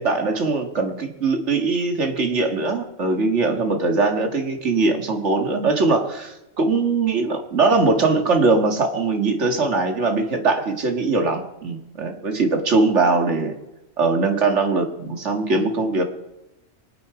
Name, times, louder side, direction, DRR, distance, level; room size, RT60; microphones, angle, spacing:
voice 1, 0.0-13.5 14.0-16.0, right 3 dB, 55° right, 5 dB, 2.1 m, -21 dB
24.0 x 8.5 x 4.9 m, 0.96 s
omnidirectional pair, 1.4 m